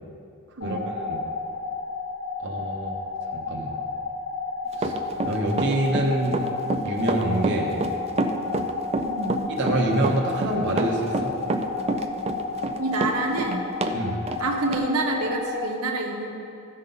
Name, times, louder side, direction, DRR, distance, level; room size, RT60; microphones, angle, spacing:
sound 1, 0.6-15.6, left 3 dB, 75° left, 2.1 m, -32 dB
voice 1, 0.6-1.2 2.4-3.0 3.3-3.7 4.8-4.9 5.2-6.4 6.8-7.8 9.5-11.3 13.9-14.3, right 1 dB, 55° right, -1 dB, 0.9 m, -26 dB
Run, 4.7-14.0 14.3-14.4 14.7-14.8, right 2 dB, 30° right, 0.4 m, -27 dB
voice 2, 9.0-9.5 12.8-13.7 14.4-16.3, right 2 dB, 90° right, 1 dB, 1.1 m, -27 dB
14.0 x 5.5 x 3.9 m, 2.5 s
head